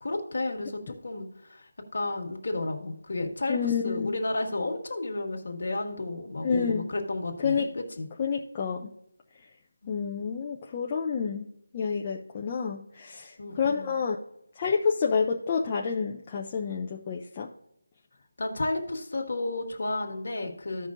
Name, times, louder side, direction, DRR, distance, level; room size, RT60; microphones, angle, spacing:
voice 1, 0.0-8.1 9.8-9.9 13.4-13.9 18.4-20.9, left 2 dB, 40° left, 2 dB, 1.6 m, -32 dB
voice 2, 3.5-4.1 6.4-6.8 7.4-7.7 8.2-8.9 9.9-11.5 11.7-14.2 14.6-17.5, left 6 dB, 15° left, -1 dB, 0.4 m, -29 dB
15.0 x 5.4 x 2.5 m, 0.77 s
figure-of-eight pair, 180°, 0 cm